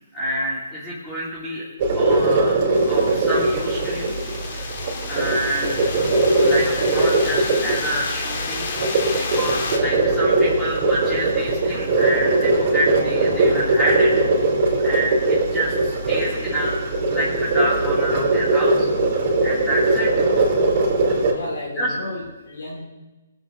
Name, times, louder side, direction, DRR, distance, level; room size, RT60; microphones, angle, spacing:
voice 1, 0.1-1.6 2.0-2.6 2.8-4.1 4.5-4.7 5.1-5.8 6.4-8.8 9.1-14.1 14.8-18.9 19.4-20.2 21.8-21.9, equal, 10° left, -9 dB, 2.2 m, -28 dB
sound 1, 1.8-21.3, right 2 dB, 40° right, 3.3 m, -20 dB
sound 2, 2.7-9.8, left 4 dB, 45° left, 1.4 m, -31 dB
voice 2, 21.3-22.8, left 1 dB, 75° left, -2 dB, 1.8 m, -33 dB
23.0 x 7.9 x 2.5 m, 1.1 s
hypercardioid pair, 145°, 0 cm